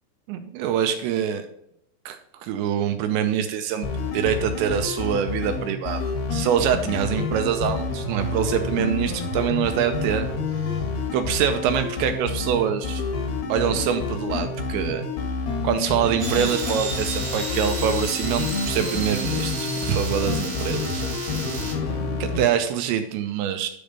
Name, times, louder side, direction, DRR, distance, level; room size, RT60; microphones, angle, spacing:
voice 1, 0.3-1.4 2.1-3.9 4.1-10.3 11.1-13.0 13.5-15.0 15.6-21.1 22.2-23.7, right 9 dB, 85° right, 7 dB, 2.6 m, -25 dB
sound 1, 3.8-22.5, left 4 dB, 70° left, 2.7 m, -28 dB
sound 2, 16.2-21.7, right 3 dB, 50° right, 1.5 m, -32 dB
10.5 x 3.5 x 5.1 m, 0.75 s
omnidirectional pair, 5.7 m